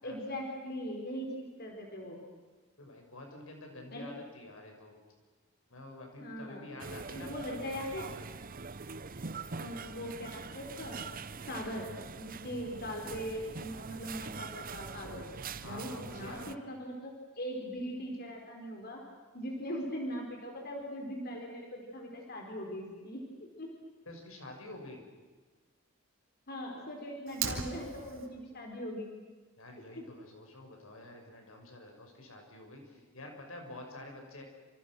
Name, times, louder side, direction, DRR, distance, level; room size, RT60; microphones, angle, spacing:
voice 1, 0.0-2.2 3.9-4.1 6.2-6.6 7.1-8.1 9.5-11.1 11.4-11.9 12.2-15.3 15.6-19.0 19.3-23.2 23.6-23.7 26.5-29.1 29.9-30.0, equal, 50° left, 1 dB, 4.6 m, -40 dB
voice 2, 2.8-4.9 5.7-7.3 15.6-16.5 24.1-25.0 29.6-34.4, left 2 dB, 80° left, 2 dB, 6.4 m, -48 dB
sound 1, 6.8-16.5, right 4 dB, 45° right, 0.8 m, -43 dB
Fire, 27.3-28.3, right 6 dB, 70° right, 3.5 m, -37 dB
28.5 x 27.5 x 6.4 m, 1.4 s
head